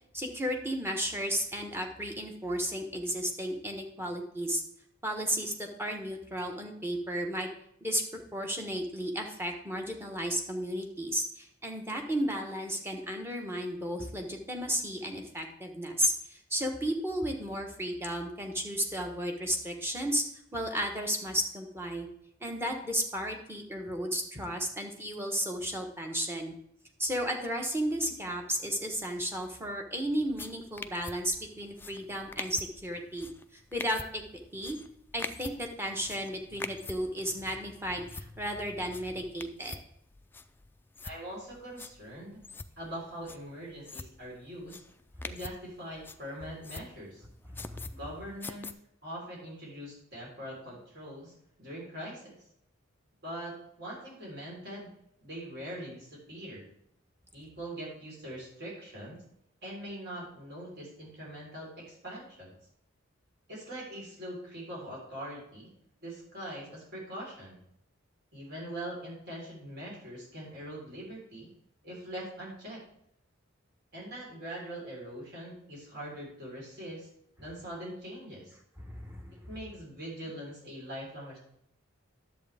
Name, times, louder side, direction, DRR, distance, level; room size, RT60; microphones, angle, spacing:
voice 1, 0.1-4.6 5.0-7.5 7.8-8.0 8.3-20.2 20.5-22.1 22.4-26.5 27.0-34.2 34.5-34.8 35.1-39.8 47.5-47.9 78.8-79.5, equal, 10° right, 3 dB, 1.2 m, -33 dB
sound 1, 30.2-48.7, left 3 dB, 10° left, 0.3 m, -46 dB
voice 2, 41.0-42.4 42.8-44.8 45.2-47.2 47.9-48.7 49.0-51.3 51.6-52.4 53.2-54.9 55.2-56.6 57.3-59.2 59.6-62.5 63.5-65.7 66.0-67.6 68.3-71.5 71.8-72.8 73.9-77.1 77.4-78.6 79.5-81.4, right 1 dB, 55° right, -4 dB, 4.2 m, -42 dB
10.5 x 7.7 x 3.5 m, 0.73 s
head